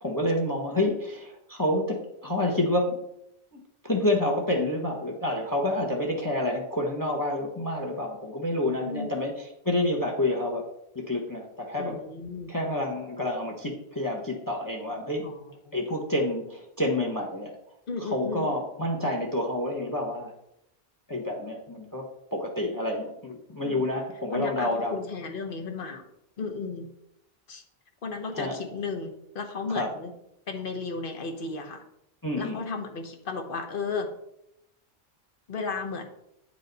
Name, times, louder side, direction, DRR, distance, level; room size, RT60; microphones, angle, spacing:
voice 1, 0.0-3.0 3.5-10.6 10.9-12.0 12.5-15.2 15.7-17.5 18.0-20.3 21.1-22.0 22.3-25.0 28.3-28.6 29.7-29.9 32.2-32.7, left 1 dB, 20° left, 1 dB, 1.0 m, -28 dB
voice 2, 11.8-12.5 15.2-15.3 15.7-15.8 17.9-18.5 23.6-23.8 24.3-26.0 26.4-26.9 27.5-27.6 28.0-30.1 30.5-31.8 32.4-34.1 35.5-36.0, left 4 dB, 60° left, 6 dB, 1.1 m, -34 dB
8.7 x 4.9 x 4.0 m, 0.80 s
omnidirectional pair, 1.0 m